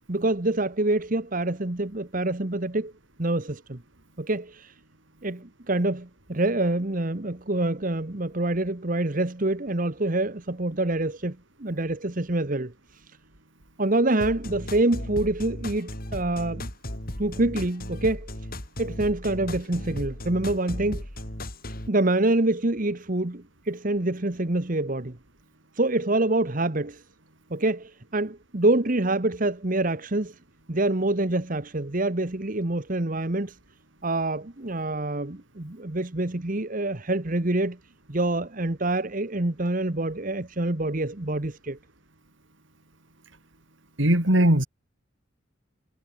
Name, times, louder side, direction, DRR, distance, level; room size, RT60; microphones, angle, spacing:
voice 1, 0.1-2.9 3.2-3.8 4.2-4.7 5.2-13.0 13.8-16.7 17.2-18.3 18.8-21.0 21.9-25.2 25.7-27.0 27.5-30.3 30.7-33.6 34.0-37.8 38.1-41.8, right 2 dB, 40° right, 1.4 m, -26 dB
sound 1, 14.2-21.9, left 1 dB, 45° left, 4.9 m, -36 dB
voice 2, 44.0-44.7, right 1 dB, 70° right, 4.2 m, -19 dB
head